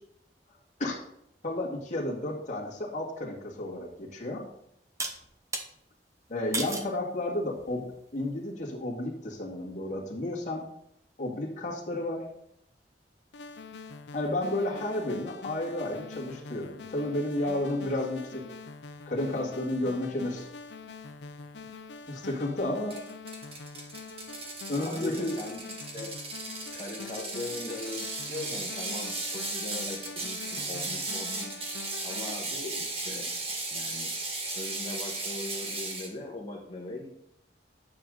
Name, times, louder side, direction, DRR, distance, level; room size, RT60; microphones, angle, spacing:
voice 1, 1.4-4.4 6.3-7.9 8.1-10.6 11.2-12.2 14.1-18.4 19.1-20.5 22.1-23.0 24.7-25.3, left 1 dB, 45° left, -3 dB, 2.1 m, -32 dB
sound 1, 3.6-3.7 5.0-5.7 6.5-6.9 7.6-8.0, right 3 dB, 20° right, 0.9 m, -34 dB
sound 2, 13.3-32.4, left 4 dB, 75° left, 0.6 m, -45 dB
Ratchet pawl, 22.9-36.1, right 2 dB, 35° right, 1.6 m, -36 dB
voice 2, 24.7-26.1 26.7-31.5 32.0-33.3 33.7-34.1 34.5-37.1, left 2 dB, 30° left, -5 dB, 1.5 m, -40 dB
9.6 x 6.3 x 3.9 m, 0.74 s
head